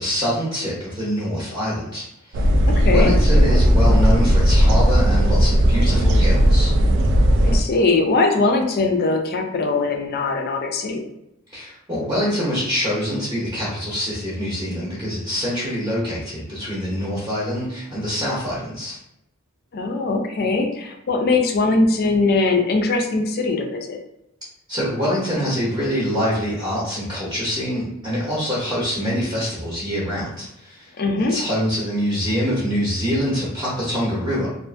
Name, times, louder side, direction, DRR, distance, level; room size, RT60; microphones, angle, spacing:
voice 1, 0.0-2.5 2.8-6.7 11.5-19.0 24.7-30.9 31.2-34.5, equal, 20° right, -7 dB, 0.8 m, -25 dB
sound 1, 2.3-7.6, equal, 55° right, 0.3 m, -16 dB
voice 2, 2.7-3.1 7.4-11.0 19.7-24.0 31.0-31.3, left 3 dB, 45° left, 3 dB, 0.4 m, -21 dB
2.5 x 2.4 x 2.4 m, 0.83 s
head